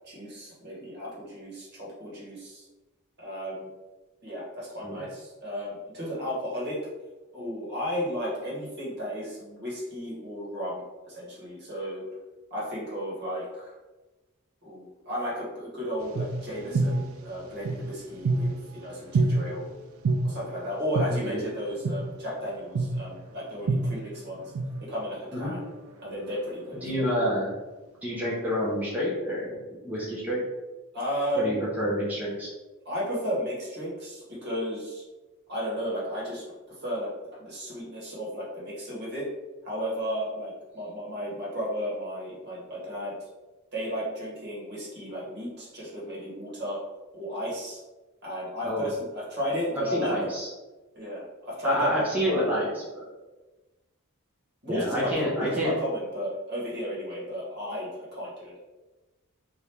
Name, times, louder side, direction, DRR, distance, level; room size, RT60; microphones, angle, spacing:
voice 1, 0.0-2.6 3.2-3.7 4.2-6.8 7.3-12.0 12.5-13.7 14.6-19.7 20.2-24.5 24.8-25.6 26.0-27.1 30.9-31.5 32.8-35.0 35.5-37.1 37.4-39.3 39.6-43.1 43.7-46.8 47.1-47.8 48.2-50.2 50.9-52.4 54.6-58.6, equal, 50° right, -6 dB, 1.3 m, -34 dB
sound 1, 16.0-18.7 19.1-19.3 20.0-20.2 20.9-21.1 21.8-22.0 22.7-22.9 23.7-25.2 25.5-27.2, right 3 dB, 70° right, 0.4 m, -27 dB
voice 2, 21.1-21.5 25.3-25.5 26.8-27.5 28.0-30.4 31.4-32.5 48.6-48.9 49.8-50.5 51.6-53.0 54.7-55.7, equal, 5° right, -7 dB, 0.6 m, -28 dB
2.9 x 2.5 x 3.4 m, 1.2 s
head